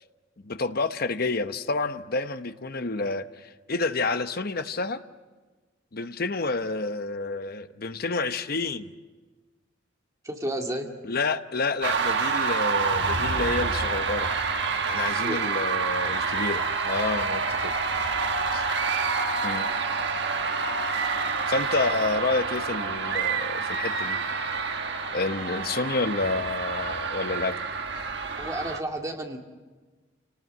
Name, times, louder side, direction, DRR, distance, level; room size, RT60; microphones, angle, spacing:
voice 1, 0.4-5.0 5.9-8.9 11.0-14.3 14.9-17.7 18.0-18.1 18.5-18.6 19.4-19.7 21.5-24.2 25.1-27.6, left 3 dB, 50° left, 10 dB, 0.9 m, -29 dB
voice 2, 10.2-10.9 15.2-15.4 28.4-29.4, right 1 dB, 15° right, 2 dB, 2.2 m, -31 dB
sound 1, 11.8-28.8, right 4 dB, 60° right, 1.4 m, -28 dB
28.5 x 19.0 x 7.8 m, 1.3 s
head